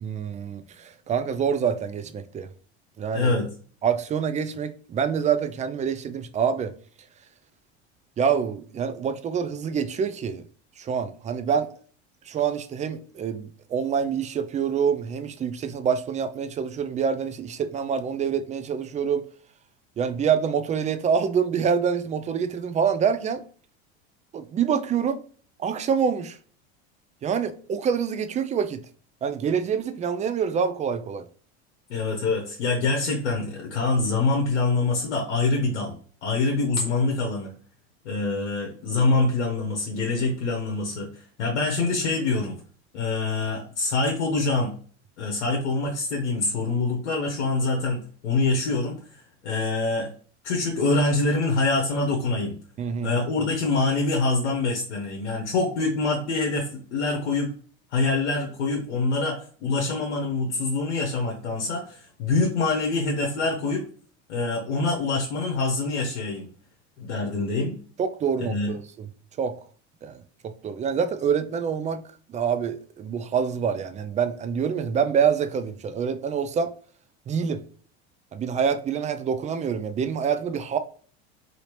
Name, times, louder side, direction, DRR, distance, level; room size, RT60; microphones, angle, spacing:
voice 1, 0.0-2.5 3.0-3.3 3.8-6.7 8.2-10.4 10.8-11.7 12.3-19.3 20.0-23.4 24.3-25.2 25.6-26.4 27.2-28.8 29.2-31.3 52.8-53.2 67.2-67.3 68.0-69.1 69.4-69.5 70.0-70.2 70.4-72.0 72.3-76.7 77.3-77.6 78.3-80.8, right 7 dB, 20° right, 0.4 m, -26 dB
voice 2, 3.1-3.5 31.9-35.9 36.2-37.5 38.0-42.6 42.9-44.7 45.2-49.0 49.4-50.1 50.4-52.5 53.0-57.5 57.9-63.8 64.3-66.5 67.0-67.8 68.4-68.7, left 3 dB, 90° left, 0.9 m, -25 dB
2.8 x 2.8 x 3.1 m
hypercardioid pair, 90°, 34 cm